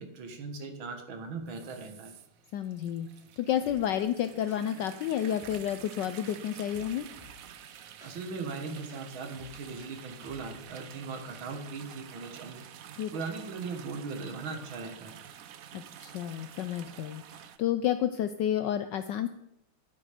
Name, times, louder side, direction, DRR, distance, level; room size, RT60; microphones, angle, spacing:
voice 1, 0.0-2.1 8.0-12.6 13.1-15.2, right 4 dB, 65° right, 5 dB, 2.1 m, -39 dB
sound 1, 1.5-17.6, right 9 dB, 80° right, 0.7 m, -49 dB
voice 2, 2.5-3.1 3.4-7.1 13.0-13.1 15.7-19.3, left 10 dB, 75° left, 10 dB, 1.0 m, -30 dB
sound 2, 3.6-4.0 4.5-4.9 5.4-5.8 6.2-7.5 8.0-10.6, left 2 dB, ahead, 2.7 m, -56 dB
12.0 x 8.3 x 5.0 m, 0.81 s
omnidirectional pair, 2.4 m